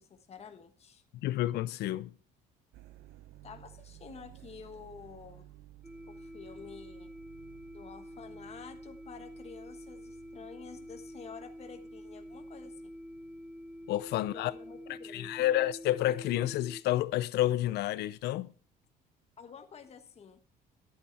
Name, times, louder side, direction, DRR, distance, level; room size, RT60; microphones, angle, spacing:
voice 1, 0.0-1.0 3.4-5.5 6.1-7.1 7.7-12.9 14.3-15.5 19.4-20.4, left 6 dB, 40° left, 1.3 m, -50 dB
voice 2, 1.1-2.1 13.9-14.5 14.9-18.5, left 14 dB, 75° left, 0.6 m, -30 dB
sound 1, 2.7-17.9, right 14 dB, 80° right, 0.8 m, -57 dB
sound 2, 5.8-16.8, equal, 5° right, 0.5 m, -47 dB
11.5 x 8.7 x 4.4 m
cardioid pair, 110°, 17 cm